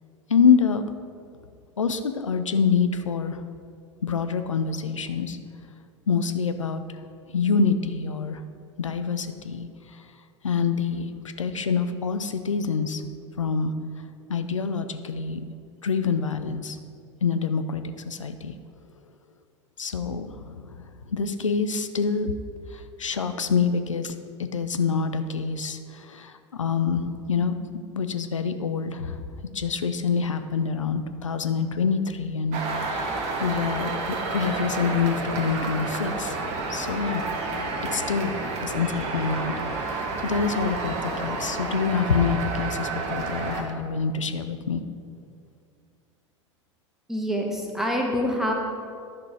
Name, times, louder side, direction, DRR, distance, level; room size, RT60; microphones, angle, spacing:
voice 1, 0.3-0.9 1.8-3.4 4.0-5.4 6.1-6.8 7.3-8.4 8.8-10.0 10.4-11.1 11.4-13.0 13.4-13.7 14.3-15.4 15.8-16.8 17.2-18.5 19.8-20.7 21.1-22.3 22.7-24.1 24.4-27.6 27.9-29.2 29.5-32.6 32.9-37.2 37.9-44.8, left 5 dB, 85° left, 9 dB, 0.6 m, -26 dB
sound 1, 32.5-43.6, right 3 dB, 45° right, 1.4 m, -30 dB
voice 2, 47.1-48.5, equal, 5° right, 0 dB, 1.4 m, -26 dB
10.5 x 6.1 x 4.7 m, 2.3 s
figure-of-eight pair, 85°, 16 cm